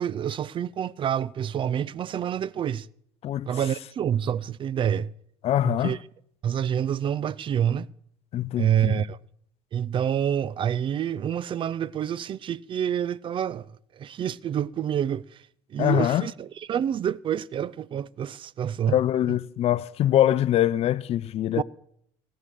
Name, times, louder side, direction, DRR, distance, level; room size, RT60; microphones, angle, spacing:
voice 1, 0.0-2.9 3.5-5.1 5.6-6.0 6.4-7.9 8.6-9.2 9.7-19.0 21.6-21.7, right 9 dB, 40° right, 0.4 m, -27 dB
voice 2, 5.4-5.9 8.3-9.0 15.8-16.3 18.9-21.6, left 12 dB, 45° left, 0.5 m, -23 dB
17.5 x 6.6 x 7.5 m
hypercardioid pair, 70°, 14 cm